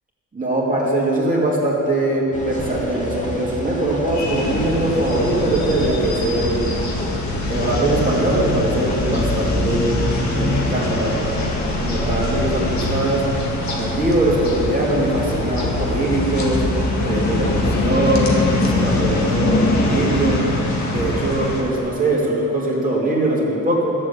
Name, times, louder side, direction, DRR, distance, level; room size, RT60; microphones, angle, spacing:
voice 1, 0.3-6.7 7.5-10.0 10.3-11.4 11.8-13.2 13.7-16.6 17.0-20.5 20.9-23.9, right 1 dB, 25° right, -5 dB, 2.5 m, -21 dB
sound 1, 2.3-21.9, equal, 25° left, 1.9 m, -30 dB
sound 2, 4.1-21.6, left 2 dB, 60° left, 1.9 m, -23 dB
11.5 x 7.5 x 8.5 m, 2.9 s
cardioid pair, 120°, 32 cm